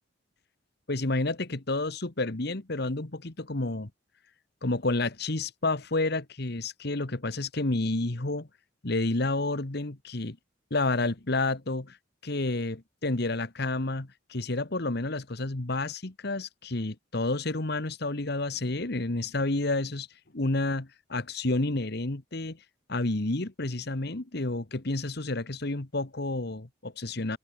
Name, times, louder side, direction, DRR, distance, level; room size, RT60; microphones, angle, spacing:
voice 1, 0.9-3.9 4.6-8.5 8.8-10.4 10.7-12.0 12.2-20.1 20.3-22.6 22.9-27.4, left 2 dB, 55° left, 1.5 m, -30 dB
head